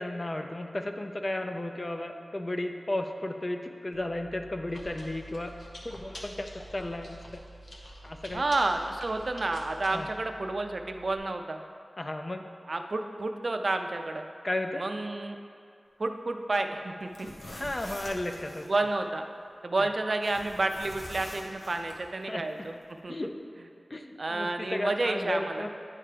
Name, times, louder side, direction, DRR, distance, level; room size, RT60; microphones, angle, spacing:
voice 1, 0.0-5.5 5.8-7.4 8.0-8.4 9.9-10.1 12.0-12.5 14.4-14.8 17.5-18.7 19.8-19.9 22.3-22.4 23.1-23.3 23.9-25.7, left 1 dB, 35° left, 5 dB, 0.4 m, -34 dB
Chewing mastication, 3.9-11.2, equal, 80° left, 0.9 m, -47 dB
voice 2, 8.3-11.6 12.7-14.3 14.8-15.4 16.0-17.3 18.6-19.3 19.6-22.7 23.0-23.1 24.2-25.7, right 2 dB, 55° right, 6 dB, 0.4 m, -30 dB
sound 1, 17.0-18.7 20.2-22.0, left 1 dB, 60° left, 1.1 m, -44 dB
9.6 x 3.3 x 5.0 m, 2.3 s
wide cardioid pair, 90°, 0 cm